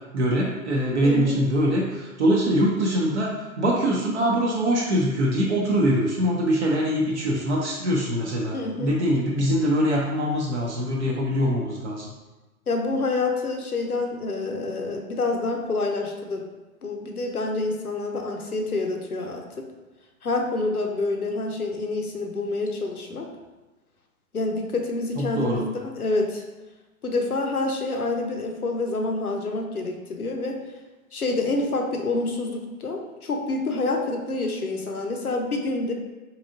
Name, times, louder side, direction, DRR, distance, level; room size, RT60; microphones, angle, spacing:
voice 1, 0.1-12.1 25.2-25.6, equal, 55° right, -2 dB, 0.7 m, -23 dB
voice 2, 1.0-1.3 8.5-8.9 12.7-16.4 16.8-19.7 20.2-23.3 24.3-26.4 27.0-30.6 31.1-35.9, left 2 dB, 90° left, 3 dB, 0.6 m, -27 dB
3.9 x 2.8 x 2.5 m, 1.1 s
figure-of-eight pair, 110°, 43 cm